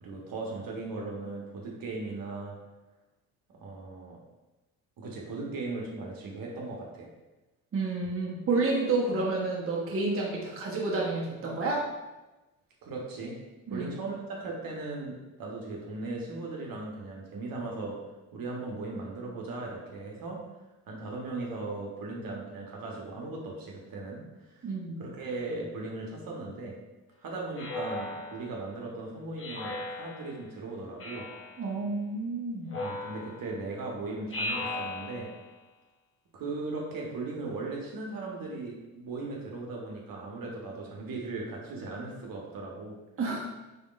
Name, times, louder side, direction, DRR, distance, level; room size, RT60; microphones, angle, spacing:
voice 1, 0.0-2.6 3.5-4.2 5.0-7.1 12.8-13.4 13.7-18.0 18.3-20.5 20.9-24.7 25.0-26.8 27.2-31.3 32.7-35.3 36.3-43.0, right 3 dB, 55° right, -2 dB, 1.1 m, -38 dB
voice 2, 7.7-11.9 13.7-13.9 24.6-25.0 31.6-32.8 43.2-43.5, right 3 dB, 30° right, -3 dB, 1.0 m, -30 dB
Speech synthesizer, 27.5-28.7 29.4-30.4 31.0-31.7 32.7-33.6 34.3-35.5, left 2 dB, 30° left, 0.9 m, -37 dB
4.2 x 3.5 x 2.4 m, 1.1 s
hypercardioid pair, 60°, 41 cm